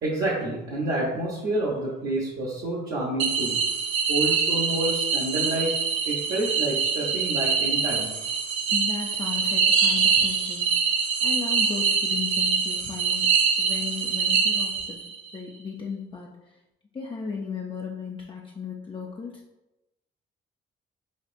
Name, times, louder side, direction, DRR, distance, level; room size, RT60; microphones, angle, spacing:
voice 1, 0.0-3.6 4.1-5.7 6.1-8.1, right 1 dB, 55° right, -6 dB, 1.0 m, -28 dB
sound 1, 3.2-15.2, right 5 dB, 90° right, 0.7 m, -24 dB
voice 2, 8.7-15.0 15.3-16.5 16.9-19.4, left 5 dB, 25° left, -2 dB, 0.5 m, -35 dB
6.4 x 2.4 x 2.5 m, 0.97 s
cardioid pair, 90°, 20 cm